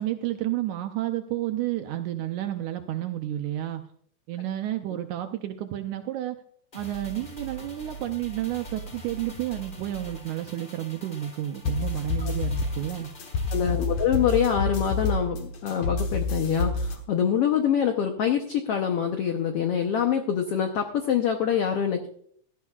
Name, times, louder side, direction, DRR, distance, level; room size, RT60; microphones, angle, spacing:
voice 1, 0.0-3.8 4.3-6.4 6.8-13.1, right 13 dB, 75° right, 7 dB, 1.9 m, -31 dB
sound 1, 6.7-15.3 15.6-15.7, right 1 dB, 35° left, 0.8 m, -44 dB
sound 2, 11.7-17.0, left 3 dB, 60° left, 2.1 m, -28 dB
voice 2, 13.5-22.1, left 8 dB, 85° left, 5 dB, 1.3 m, -25 dB
16.5 x 12.0 x 2.3 m, 0.62 s
omnidirectional pair, 3.8 m